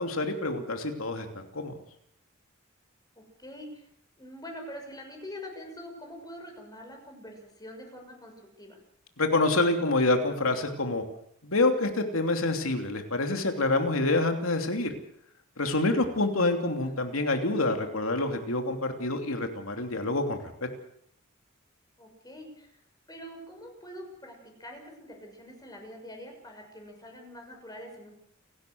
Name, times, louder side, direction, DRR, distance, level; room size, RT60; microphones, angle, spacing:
voice 1, 0.0-1.8 9.2-11.0 11.4-14.9 15.6-20.5, left 2 dB, 80° left, 5 dB, 3.0 m, -27 dB
voice 2, 3.2-3.9 4.2-8.8 16.6-17.0 22.0-22.8 23.1-28.1, equal, 20° left, 3 dB, 6.4 m, -45 dB
29.0 x 12.5 x 7.9 m, 0.69 s
head